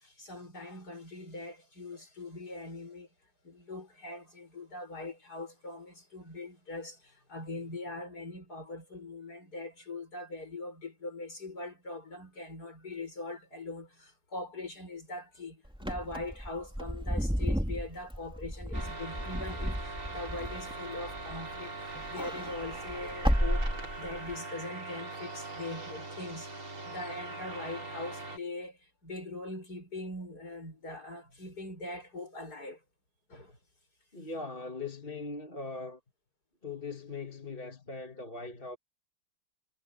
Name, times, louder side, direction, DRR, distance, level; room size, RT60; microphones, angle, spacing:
voice 1, 0.0-3.1 3.4-32.8 33.3-33.6, left 2 dB, 45° left, 7.6 m, -42 dB
Wind / Car, 15.7-21.6 21.9-24.3, equal, ahead, 3.7 m, -33 dB
sound 1, 18.7-28.4, right 3 dB, 75° right, 6.4 m, -41 dB
voice 2, 34.1-36.0 36.6-38.8, left 3 dB, 25° left, 2.5 m, -40 dB
omnidirectional pair, 2.3 m